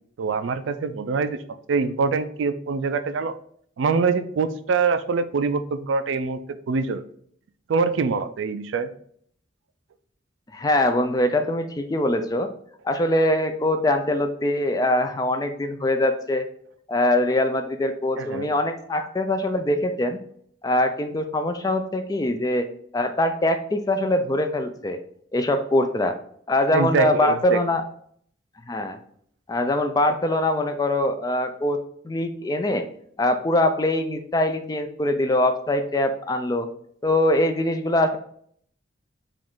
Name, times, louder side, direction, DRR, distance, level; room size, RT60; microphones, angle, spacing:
voice 1, 0.2-1.4 1.7-3.3 3.8-6.4 6.7-7.0 7.7-8.9 18.2-18.5 26.7-27.6, right 4 dB, 80° right, 12 dB, 0.4 m, -24 dB
voice 2, 10.5-12.5 12.8-16.5 16.9-20.2 20.6-25.0 25.3-26.2 26.5-27.8 28.7-29.0 29.5-31.8 32.0-32.9 33.2-36.7 37.0-38.2, left 1 dB, 20° left, 7 dB, 0.3 m, -23 dB
4.9 x 2.5 x 3.6 m, 0.63 s
head